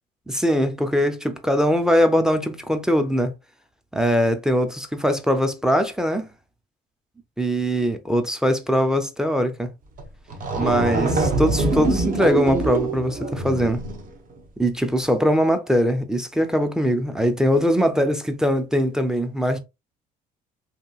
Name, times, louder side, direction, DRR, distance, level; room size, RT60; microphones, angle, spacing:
voice 1, 0.3-3.3 3.9-6.3 7.4-9.7 10.6-13.8 14.6-19.6, equal, 5° right, 0.4 m, -21 dB
sound 1, 10.0-10.1 10.3-14.1, right 2 dB, 55° right, 0.9 m, -24 dB
2.9 x 2.6 x 2.3 m
cardioid pair, 110°, 17 cm